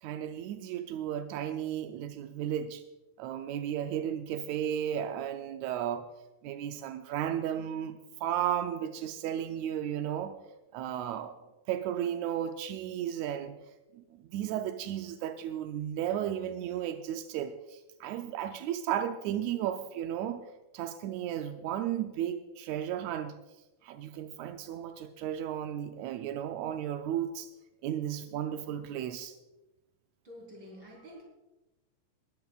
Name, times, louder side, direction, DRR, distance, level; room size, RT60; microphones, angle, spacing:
voice 1, 0.0-2.8 3.2-6.0 6.4-10.4 10.7-11.4 11.7-13.6 13.9-20.4 20.7-23.4 23.8-27.5 27.8-29.3, right 10 dB, 80° right, 7 dB, 1.6 m, -34 dB
voice 2, 30.2-31.3, equal, 35° right, -2 dB, 4.3 m, -48 dB
19.5 x 14.0 x 2.4 m, 1.0 s
omnidirectional pair, 3.8 m